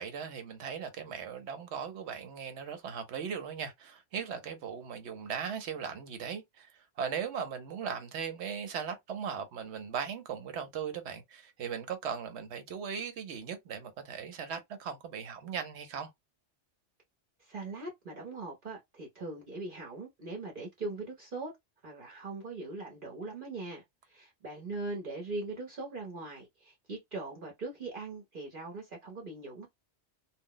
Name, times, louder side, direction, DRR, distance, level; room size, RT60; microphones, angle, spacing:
voice 1, 0.0-6.7 7.0-16.1, right 7 dB, 70° right, 1.0 m, -38 dB
voice 2, 17.4-21.5 21.8-29.7, right 3 dB, 50° right, 0.9 m, -41 dB
2.3 x 2.0 x 3.8 m
omnidirectional pair, 1.2 m